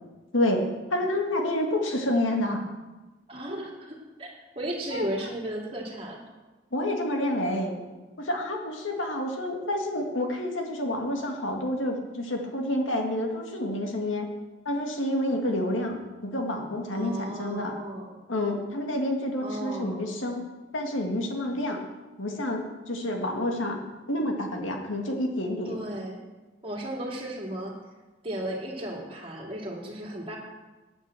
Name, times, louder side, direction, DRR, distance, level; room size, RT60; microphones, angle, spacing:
voice 1, 0.3-2.6 4.9-5.0 6.7-7.7 8.2-14.3 14.7-17.7 18.3-20.4 20.7-21.8 22.2-23.8 24.1-25.7, left 1 dB, 80° left, 2 dB, 1.9 m, -28 dB
voice 2, 3.3-6.2 16.9-18.2 19.4-20.1 25.7-26.2 26.6-27.8 28.2-30.4, right 1 dB, 30° right, -2 dB, 2.4 m, -35 dB
9.3 x 9.1 x 7.6 m, 1.2 s
head